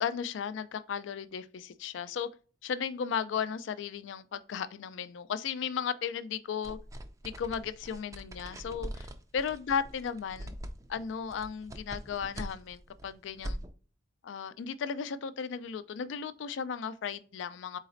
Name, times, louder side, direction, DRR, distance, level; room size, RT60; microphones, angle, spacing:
voice 1, 0.0-2.3 2.6-6.8 7.2-9.1 9.3-10.6 10.9-13.6 14.2-17.8, left 7 dB, 80° left, 0.3 m, -35 dB
sound 1, 6.6-13.7, equal, 15° right, 0.3 m, -43 dB
4.1 x 3.9 x 2.5 m
head